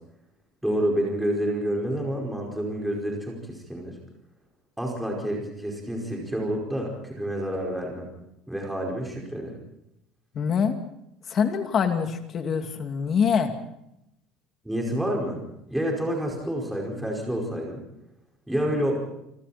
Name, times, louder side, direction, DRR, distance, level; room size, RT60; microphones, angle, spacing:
voice 1, 0.6-3.9 4.8-8.1 8.5-9.6 14.6-15.4 15.7-17.8 18.5-19.0, equal, 5° right, -1 dB, 5.0 m, -28 dB
voice 2, 10.3-10.8 11.3-13.5, left 6 dB, 30° left, 6 dB, 2.4 m, -24 dB
28.0 x 25.5 x 4.3 m, 0.82 s
cardioid pair, 180°, 0 cm